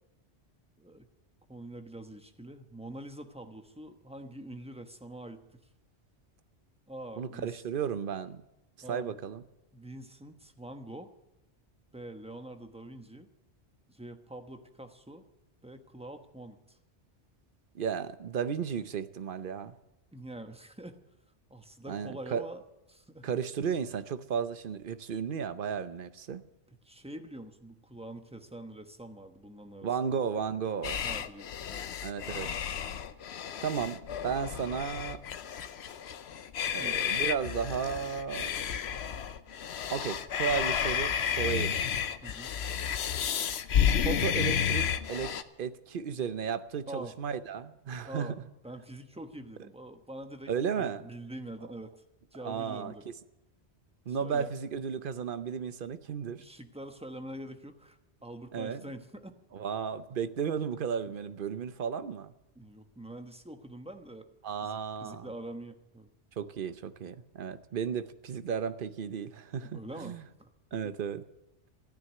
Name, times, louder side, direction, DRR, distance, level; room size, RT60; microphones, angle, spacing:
voice 1, 1.5-5.6 6.9-7.6 8.8-9.2 9.7-11.1 11.9-13.3 13.9-15.2 15.6-16.8 20.1-21.0 21.5-22.6 22.9-23.3 26.8-29.9 31.0-31.9 36.8-37.0 42.2-42.6 46.9-47.1 48.0-48.4 48.6-51.9 52.3-53.1 54.1-54.5 56.4-59.3 61.1-61.2 62.5-64.3 64.6-66.1 69.6-70.5, right 1 dB, 5° right, 6 dB, 1.0 m, -45 dB
voice 2, 7.2-8.4 8.9-9.4 17.7-19.7 21.9-22.4 23.2-26.4 29.8-31.0 32.0-32.5 33.6-35.2 36.7-38.5 39.9-41.8 44.0-48.3 50.5-51.1 52.4-53.1 54.1-56.4 58.5-58.8 59.5-62.3 64.4-65.3 66.4-70.2 70.7-71.2, right 7 dB, 55° right, 12 dB, 0.9 m, -34 dB
sound 1, 30.8-45.4, left 8 dB, 65° left, 1.0 m, -32 dB
14.5 x 9.7 x 9.4 m, 0.94 s
omnidirectional pair, 1.2 m